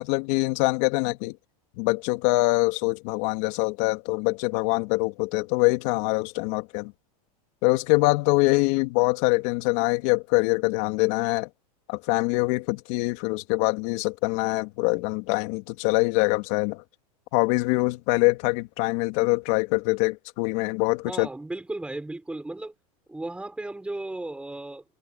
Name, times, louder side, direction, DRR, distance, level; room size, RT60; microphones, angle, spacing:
voice 1, 0.0-1.4 1.8-6.9 7.6-11.5 11.9-16.8 17.3-21.3, left 25 dB, 55° left, 3.4 m, -24 dB
voice 2, 21.1-22.7 23.1-24.8, right 2 dB, 5° right, 6.3 m, -35 dB
supercardioid pair, 140°, 20 cm